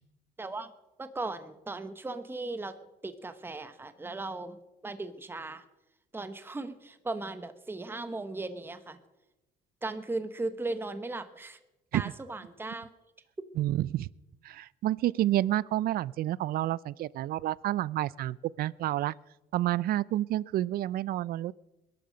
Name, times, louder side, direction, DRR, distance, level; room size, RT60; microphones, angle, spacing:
voice 1, 0.4-0.7 1.0-2.7 3.0-4.6 4.8-5.6 6.1-9.0 9.8-11.6 11.9-12.9, right 2 dB, 15° right, 10 dB, 1.1 m, -37 dB
voice 2, 13.6-14.1 14.4-19.1 19.5-21.5, right 14 dB, 60° right, 23 dB, 0.5 m, -29 dB
21.5 x 12.0 x 5.1 m, 0.99 s
cardioid pair, 110°, 17 cm